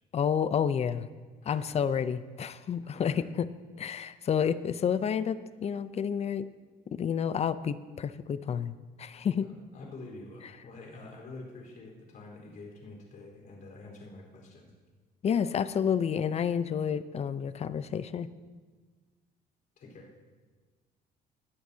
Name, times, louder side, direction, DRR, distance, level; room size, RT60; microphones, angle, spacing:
voice 1, 0.1-1.1 1.5-3.5 3.8-6.5 6.9-9.5 15.2-18.3, left 7 dB, 40° left, 14 dB, 0.6 m, -30 dB
voice 2, 1.4-1.8 2.8-3.2 9.4-14.7 19.8-20.1, left 2 dB, 55° left, -1 dB, 4.2 m, -47 dB
20.0 x 13.0 x 2.8 m, 1.4 s
cardioid pair, 110°, 17 cm